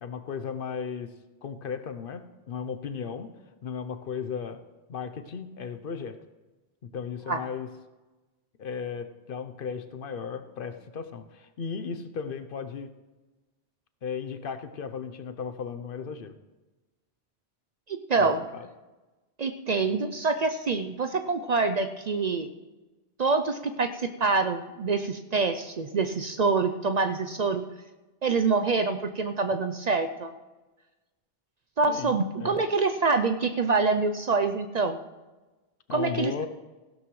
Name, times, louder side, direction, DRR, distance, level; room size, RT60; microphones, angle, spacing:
voice 1, 0.0-1.1 1.4-3.3 3.6-4.6 4.9-6.2 6.8-7.7 8.6-12.9 14.0-16.3 18.2-18.7 31.9-32.6 35.9-36.5, left 6 dB, 60° left, 9 dB, 0.9 m, -35 dB
voice 2, 17.9-18.5 19.4-22.5 23.2-27.6 28.2-30.3 31.8-35.0 35.9-36.3, right 4 dB, 50° right, 8 dB, 0.6 m, -26 dB
16.0 x 12.0 x 3.1 m, 1.2 s
omnidirectional pair, 1.1 m